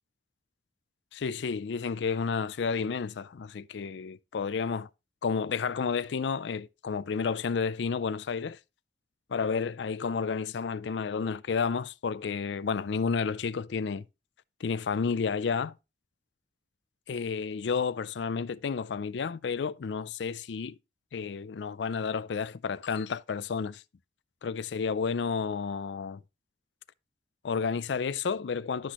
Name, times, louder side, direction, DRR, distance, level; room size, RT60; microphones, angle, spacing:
voice 1, 1.1-4.9 5.2-8.6 9.3-14.0 14.6-15.7 17.1-20.8 21.1-23.8 24.4-26.2 27.4-28.9, left 5 dB, 75° left, 0.4 m, -31 dB
11.5 x 6.0 x 3.0 m
head